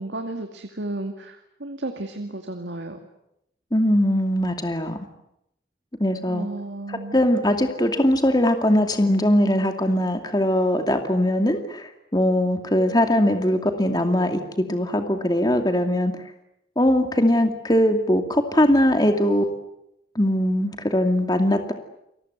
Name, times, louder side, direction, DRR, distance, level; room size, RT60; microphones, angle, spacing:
voice 1, 0.0-3.0 6.3-7.2, right 2 dB, 85° right, 5 dB, 2.3 m, -33 dB
voice 2, 3.7-5.0 6.0-6.5 6.9-16.1 16.8-19.4 20.2-21.7, left 1 dB, 20° left, 6 dB, 2.4 m, -21 dB
29.5 x 22.5 x 8.1 m, 0.81 s
head